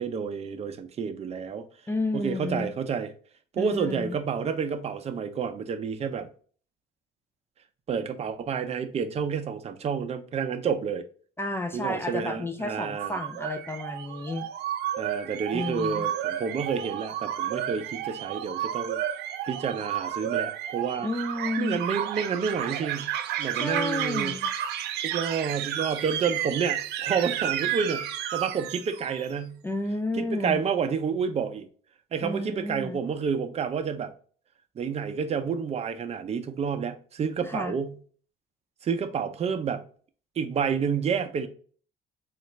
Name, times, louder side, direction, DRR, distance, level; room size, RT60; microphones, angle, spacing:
voice 1, 0.0-1.7 2.1-3.1 3.5-6.3 7.9-11.0 11.7-13.2 15.0-19.0 19.5-21.1 21.6-23.1 23.4-24.4 25.0-29.6 30.2-31.7 32.1-34.1 34.8-38.0 38.8-39.8 40.4-41.5, right 6 dB, 40° right, 0.6 m, -29 dB
voice 2, 1.9-2.7 3.6-4.2 11.4-14.5 15.5-16.1 21.0-21.8 23.5-24.5 29.6-30.6 32.2-33.0 37.4-37.7, left 2 dB, 15° left, 0.4 m, -31 dB
sound 1, 12.7-29.3, right 11 dB, 85° right, 0.5 m, -32 dB
3.9 x 2.5 x 3.1 m
cardioid pair, 110°, 17 cm